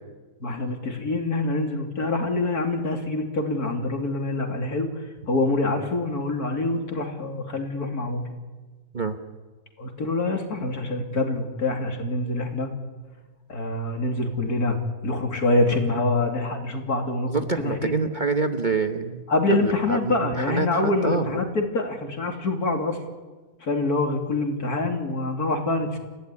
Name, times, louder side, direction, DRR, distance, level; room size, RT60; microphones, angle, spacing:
voice 1, 0.4-4.9 5.3-8.2 9.8-12.7 13.5-14.8 15.0-17.9 19.3-23.0 23.6-26.0, left 2 dB, 70° left, 4 dB, 3.4 m, -25 dB
voice 2, 17.3-19.3 19.6-21.3, right 4 dB, 35° right, 7 dB, 1.1 m, -26 dB
28.5 x 15.5 x 9.9 m, 1.3 s
omnidirectional pair, 1.7 m